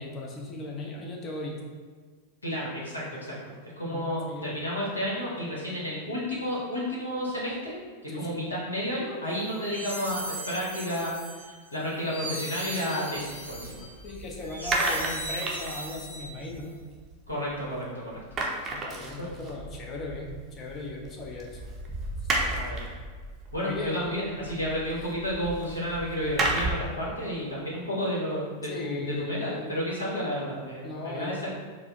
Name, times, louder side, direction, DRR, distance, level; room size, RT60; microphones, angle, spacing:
voice 1, 0.0-1.5 3.9-4.6 8.1-8.4 14.0-16.7 18.7-21.6 22.3-22.5 23.6-24.1 28.7-29.8 30.8-31.4, left 2 dB, 30° left, 0 dB, 0.7 m, -37 dB
voice 2, 2.4-3.4 3.8-7.8 8.0-13.9 17.3-18.2 19.2-19.3 22.5-22.8 23.5-31.5, equal, 75° left, -6 dB, 1.1 m, -31 dB
sound 1, 9.4-16.6, right 1 dB, 90° right, 0.5 m, -38 dB
sound 2, 13.4-17.8 18.1-27.0, right 2 dB, 25° right, 0.6 m, -34 dB
4.5 x 2.1 x 2.9 m, 1.5 s
figure-of-eight pair, 90°, 0 cm